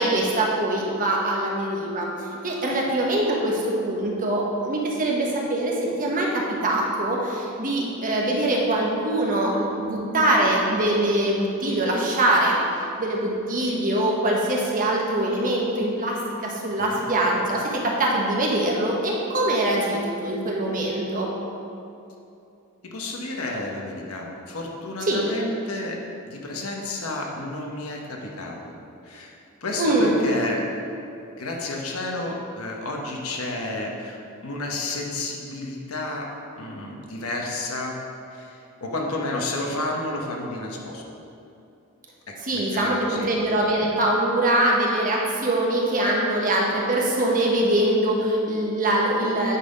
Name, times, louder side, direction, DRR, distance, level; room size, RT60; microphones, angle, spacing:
voice 1, 0.0-12.6 13.0-21.3 25.0-25.2 29.8-30.1 42.4-49.6, right 1 dB, 40° right, -2 dB, 1.2 m, -23 dB
voice 2, 22.8-26.0 26.2-28.7 29.0-29.3 29.6-30.7 31.4-34.2 34.4-38.0 38.3-38.5 38.8-41.0 42.3-43.3, left 2 dB, 75° left, 0 dB, 1.1 m, -31 dB
9.2 x 4.2 x 5.1 m, 2.6 s
head